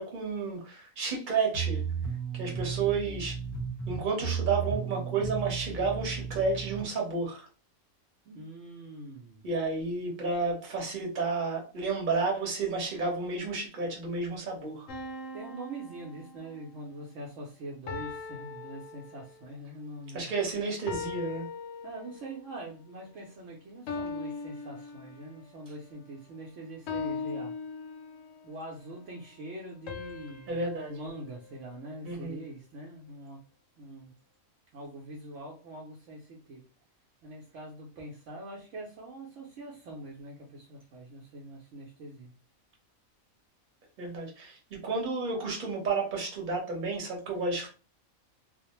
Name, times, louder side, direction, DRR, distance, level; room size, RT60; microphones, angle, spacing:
voice 1, 0.0-1.8 2.3-3.4 3.9-7.5 9.4-14.9 20.1-21.4 30.5-31.1 32.0-32.4 44.0-44.6 44.8-47.7, right 4 dB, 40° right, -1 dB, 1.0 m, -31 dB
sound 1, 1.5-6.9, right 6 dB, 20° left, 0.7 m, -34 dB
voice 2, 8.3-9.4 15.3-20.3 21.8-27.5 28.4-30.6 30.9-33.4 33.8-34.1 34.7-36.6 37.2-42.3, right 1 dB, 70° right, -2 dB, 0.9 m, -43 dB
sound 2, 14.9-16.8 17.9-19.5 20.9-22.4 23.9-25.5 26.9-28.5 29.9-32.2, left 4 dB, 70° left, 0.9 m, -40 dB
2.5 x 2.0 x 2.9 m, 0.34 s
omnidirectional pair, 1.4 m